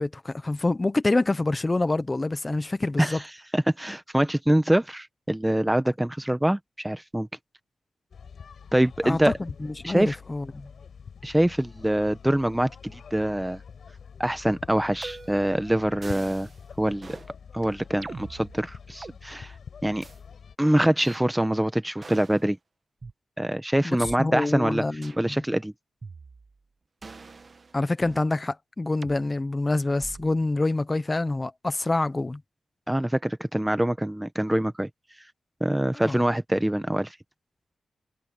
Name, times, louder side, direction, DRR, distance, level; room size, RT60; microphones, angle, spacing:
voice 1, 0.0-3.2 9.0-10.7 23.8-25.1 27.7-32.4 36.1-36.2, left 2 dB, 20° left, 1.0 m, -26 dB
voice 2, 3.5-7.3 8.7-9.3 9.8-10.2 11.2-13.6 14.2-16.5 16.8-17.2 17.5-19.5 19.8-20.0 20.6-22.6 23.4-24.8 25.2-25.7 32.9-34.9 35.6-37.1, right 1 dB, 10° right, 1.0 m, -24 dB
sound 1, 8.1-20.6, left 6 dB, 65° left, 5.8 m, -45 dB
sound 2, 15.0-15.5 16.0-16.6 17.0-17.3 18.0-19.2 20.0-20.2 21.0-21.2 22.0-22.4 23.0-23.1 24.0-24.2 25.0-25.3 26.0-26.6 27.0-28.3 29.0-29.2 30.0-30.4, right 4 dB, 35° right, 1.5 m, -43 dB
wide cardioid pair, 115°, 0 cm